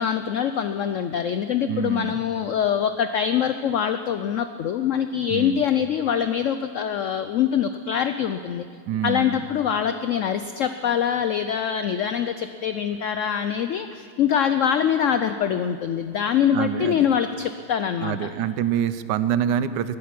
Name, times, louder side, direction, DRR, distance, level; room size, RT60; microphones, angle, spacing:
voice 1, 0.0-8.7 9.0-18.3, left 8 dB, 80° left, 10 dB, 0.6 m, -24 dB
voice 2, 1.7-2.2 5.3-5.6 8.9-9.4 16.5-17.1 18.0-20.0, right 9 dB, 80° right, 13 dB, 1.2 m, -26 dB
20.5 x 9.3 x 6.0 m, 2.1 s
omnidirectional pair, 1.9 m